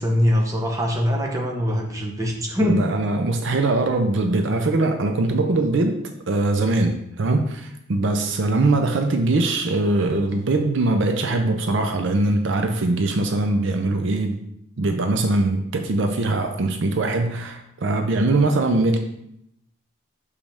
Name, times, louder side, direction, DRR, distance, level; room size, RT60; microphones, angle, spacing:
voice 1, 0.0-2.8, equal, 15° right, -1 dB, 0.9 m, -22 dB
voice 2, 2.6-6.0 6.3-14.4 14.8-19.0, right 2 dB, 55° right, 5 dB, 0.5 m, -21 dB
6.7 x 5.1 x 3.5 m, 0.78 s
head